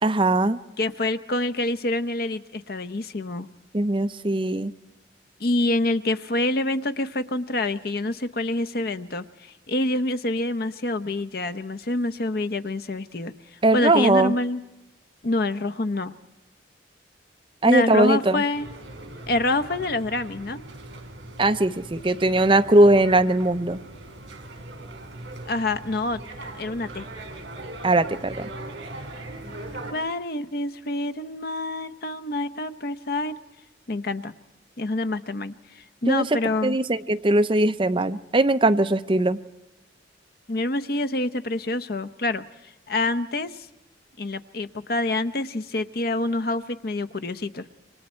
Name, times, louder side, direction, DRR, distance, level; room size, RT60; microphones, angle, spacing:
voice 1, 0.0-0.6 3.7-4.7 13.6-14.3 17.6-18.4 21.4-23.8 27.8-28.5 36.0-36.2 36.6-39.4, right 2 dB, 30° right, 10 dB, 0.7 m, -20 dB
voice 2, 0.8-3.5 5.4-14.6 15.2-16.1 17.7-18.7 19.3-20.6 25.4-27.1 29.9-33.4 33.9-34.3 34.8-36.8 40.5-43.7 44.2-47.6, left 2 dB, 55° left, 12 dB, 0.9 m, -27 dB
sound 1, 18.5-29.9, right 2 dB, 70° right, 4.2 m, -40 dB
28.0 x 25.0 x 4.5 m, 0.99 s
head